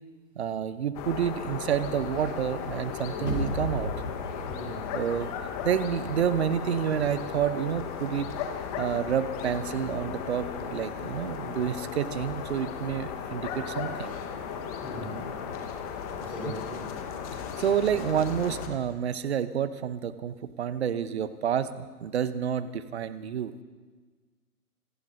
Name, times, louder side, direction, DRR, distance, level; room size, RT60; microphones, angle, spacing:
voice 1, 0.4-3.9 4.9-5.3 5.6-8.3 8.8-14.1 16.5-16.6 17.6-23.5, right 9 dB, 45° right, 14 dB, 0.9 m, -29 dB
sound 1, 0.9-18.7, left 7 dB, 25° left, 1.3 m, -36 dB
sound 2, 3.2-6.1 6.4-6.5, left 1 dB, 85° left, 6.8 m, -35 dB
voice 2, 14.8-15.2 16.1-16.8, left 1 dB, 5° left, -8 dB, 4.7 m, -39 dB
27.0 x 19.0 x 2.7 m, 1.4 s
figure-of-eight pair, 130°, 46 cm